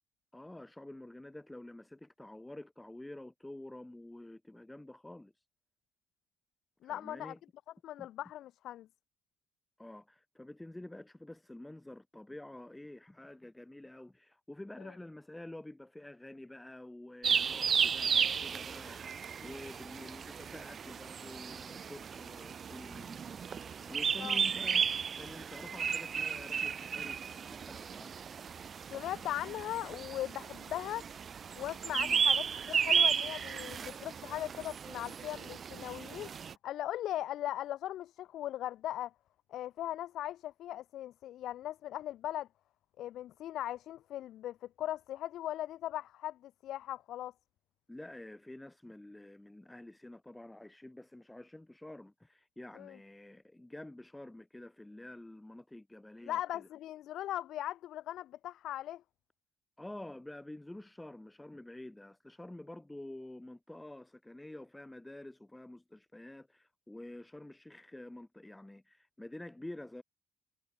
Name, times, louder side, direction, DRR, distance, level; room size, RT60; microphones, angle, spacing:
voice 1, 0.3-5.4 6.8-7.4 8.0-8.1 9.8-24.9 25.2-27.2 27.5-28.1 31.9-32.2 47.9-56.7 59.8-70.0, left 1 dB, 10° left, 3.0 m, -49 dB
voice 2, 6.8-7.3 7.8-8.9 14.8-14.9 24.2-24.4 28.9-31.1 31.5-36.3 36.6-39.1 39.5-42.5 43.0-47.3 52.8-53.0 56.2-59.0, left 13 dB, 75° left, 0.9 m, -39 dB
sound 1, 17.2-36.5, right 7 dB, 40° right, 0.6 m, -34 dB
cardioid pair, 130°, 0 cm